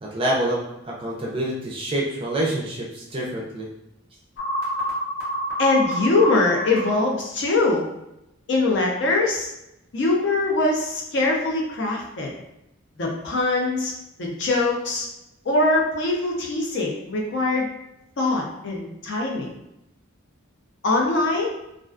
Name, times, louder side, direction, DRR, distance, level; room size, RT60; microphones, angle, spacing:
voice 1, 0.0-3.7, right 1 dB, 25° right, -3 dB, 0.4 m, -27 dB
sound 1, 4.4-6.9, equal, 80° left, 1.0 m, -27 dB
voice 2, 5.6-7.9 8.5-9.5 9.9-12.3 13.0-13.9 14.2-15.1 15.5-17.7 18.2-19.5 20.8-21.5, left 2 dB, 55° left, -1 dB, 0.5 m, -22 dB
2.3 x 2.2 x 2.4 m, 0.85 s
head